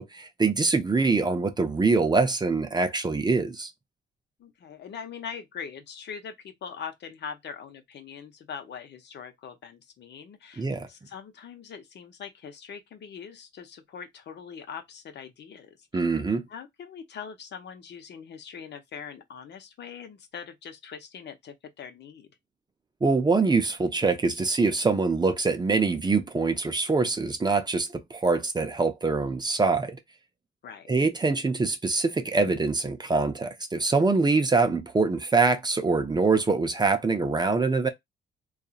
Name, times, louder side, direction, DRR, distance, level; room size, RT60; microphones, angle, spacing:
voice 1, 0.0-3.7 10.6-10.9 15.9-16.4 23.0-30.0 30.9-37.9, right 4 dB, 20° right, 0.5 m, -24 dB
voice 2, 4.4-16.0 16.5-22.3 30.6-30.9, left 7 dB, 60° left, 0.8 m, -42 dB
2.7 x 2.4 x 2.4 m
cardioid pair, 90°, 20 cm